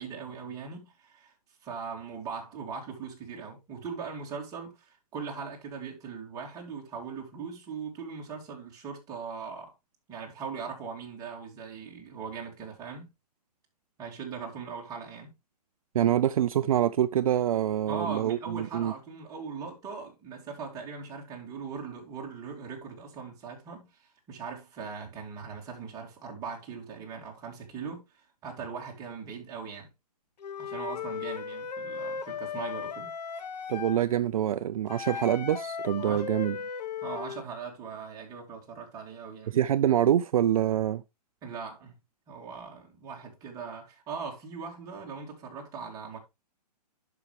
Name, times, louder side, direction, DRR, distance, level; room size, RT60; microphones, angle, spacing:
voice 1, 0.0-1.3 1.6-9.7 10.1-13.1 14.0-15.3 17.9-29.9 30.6-33.1 36.0-36.3 37.0-39.6 41.4-41.9 42.3-46.2, right 5 dB, 15° right, 2.6 m, -40 dB
voice 2, 15.9-18.9 33.7-36.6 39.5-41.0, right 11 dB, 60° right, 0.5 m, -25 dB
Wind instrument woodwind instrument, 30.4-34.0 34.9-37.5, left 6 dB, 85° left, 1.1 m, -36 dB
11.0 x 5.8 x 3.2 m
hypercardioid pair, 165°, 21 cm